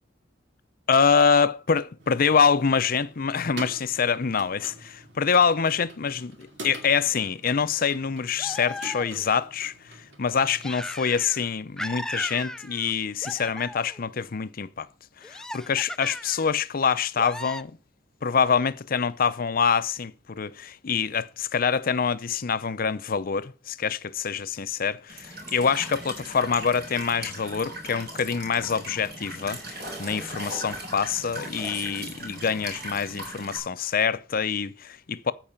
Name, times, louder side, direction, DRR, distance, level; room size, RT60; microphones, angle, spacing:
voice 1, 0.9-14.9 15.2-17.8 18.2-35.3, left 6 dB, 50° left, 0.6 m, -25 dB
sound 1, 2.0-10.7, right 2 dB, 75° right, 2.5 m, -46 dB
sound 2, 8.4-9.4 10.6-11.5 11.8-12.9 13.2-14.0 15.2-16.5 17.1-17.6, left 1 dB, 5° left, 0.4 m, -36 dB
Walk footsteps / Chirp tweet / Stream, 25.1-33.6, right 1 dB, 55° right, 5.0 m, -38 dB
14.0 x 4.8 x 5.7 m
head